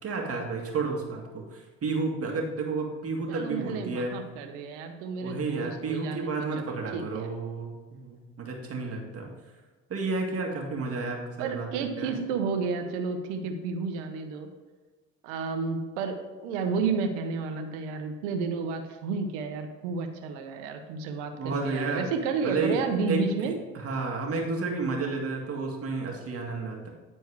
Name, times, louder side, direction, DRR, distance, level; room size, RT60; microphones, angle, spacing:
voice 1, 0.0-4.2 5.2-9.3 9.9-11.7 12.0-12.1 21.4-22.1 22.4-26.9, right 3 dB, 40° right, 1 dB, 2.0 m, -31 dB
voice 2, 3.3-7.3 11.4-14.5 15.2-16.2 16.4-23.5, right 5 dB, 90° right, 6 dB, 1.0 m, -31 dB
9.7 x 4.5 x 4.8 m, 1.3 s
supercardioid pair, 80°, 34 cm